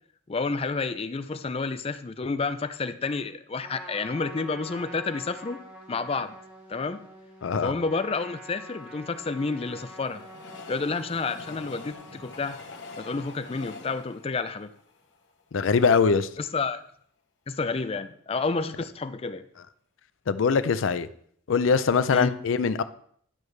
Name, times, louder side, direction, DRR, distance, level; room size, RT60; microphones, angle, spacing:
voice 1, 0.3-5.6 5.9-6.4 6.7-7.0 7.6-10.3 10.7-12.6 13.0-14.7 16.4-16.8 17.5-19.4 22.1-22.4, left 4 dB, 30° left, 0.4 m, -30 dB
Trumpet, 3.6-12.4, equal, 10° right, 1.5 m, -46 dB
voice 2, 7.4-7.7 15.5-16.3 20.3-21.1 21.5-22.8, left 5 dB, 85° left, 0.5 m, -22 dB
Train, 8.6-15.9 16.4-16.5 16.7-16.8, left 3 dB, 65° left, 1.1 m, -46 dB
10.5 x 6.3 x 3.3 m
head